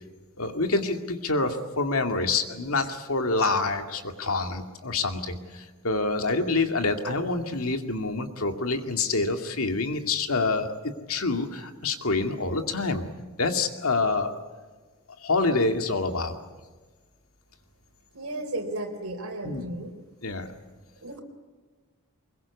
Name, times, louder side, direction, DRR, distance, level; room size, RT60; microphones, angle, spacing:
voice 1, 0.4-10.7 11.1-13.0 13.4-14.3 15.2-16.4 19.4-19.6 20.2-20.5, left 3 dB, 75° left, 5 dB, 2.4 m, -27 dB
voice 2, 18.1-19.9 21.0-21.2, right 1 dB, 80° right, 6 dB, 3.8 m, -34 dB
23.5 x 22.0 x 8.4 m, 1.3 s
head